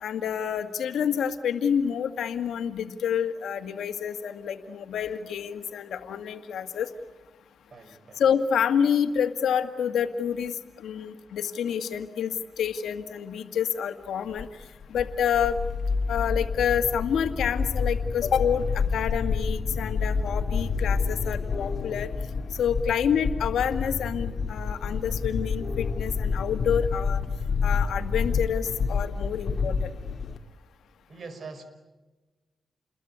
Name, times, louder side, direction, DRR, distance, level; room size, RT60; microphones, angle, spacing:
voice 1, 0.0-6.9 8.2-10.5 10.8-14.5 14.9-15.6 16.1-22.1 22.6-27.2 27.6-29.8, left 8 dB, 90° left, 8 dB, 1.9 m, -28 dB
voice 2, 7.7-8.2 31.1-31.6, right 4 dB, 55° right, 9 dB, 5.3 m, -43 dB
sound 1, 14.4-30.4, left 5 dB, 55° left, 2.1 m, -29 dB
29.5 x 22.0 x 8.7 m, 1.2 s
cardioid pair, 90°, 0 cm